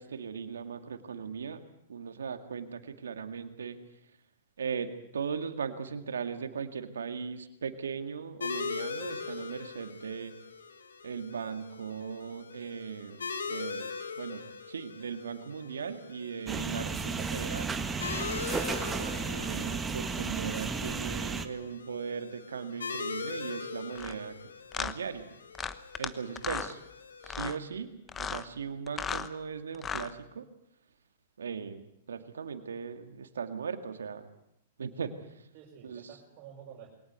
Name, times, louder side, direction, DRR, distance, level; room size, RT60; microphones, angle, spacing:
voice 1, 0.0-1.6 1.9-3.8 4.6-10.4 11.0-13.9 14.2-14.4 14.7-17.7 19.0-24.4 24.8-25.3 26.0-26.8 27.2-27.9 28.2-30.5 31.4-34.3 34.8-35.5 35.8-36.0, right 6 dB, 85° right, 8 dB, 2.1 m, -38 dB
sound 1, 8.4-27.6, left 5 dB, 90° left, 2.3 m, -41 dB
sound 2, 16.5-21.5, right 4 dB, 15° right, 1.6 m, -33 dB
voice 2, 18.7-19.1 35.5-36.9, right 9 dB, 45° right, -2 dB, 5.8 m, -50 dB
sound 3, 23.9-24.1 24.7-24.9 25.5-26.1 26.4-26.7 27.2-27.6 28.1-28.4 28.9-29.3 29.7-30.1, left 6 dB, 20° left, 1.1 m, -35 dB
22.5 x 18.0 x 8.3 m, 0.77 s
hypercardioid pair, 120°, 0 cm